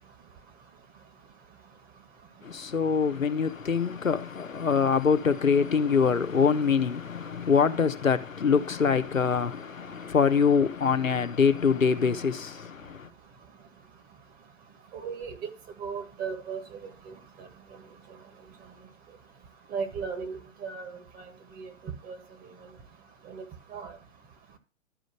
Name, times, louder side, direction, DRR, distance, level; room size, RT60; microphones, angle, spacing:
voice 1, 2.4-13.1, left 6 dB, 85° left, 1.1 m, -24 dB
voice 2, 14.9-15.5 15.8-16.6 17.1-17.5 19.7-20.9 21.2-21.3 21.6-21.7 22.0-22.2 23.3-23.4 23.7-23.9, right 6 dB, 25° right, 2.0 m, -36 dB
12.0 x 5.3 x 6.4 m
figure-of-eight pair, 120°, 39 cm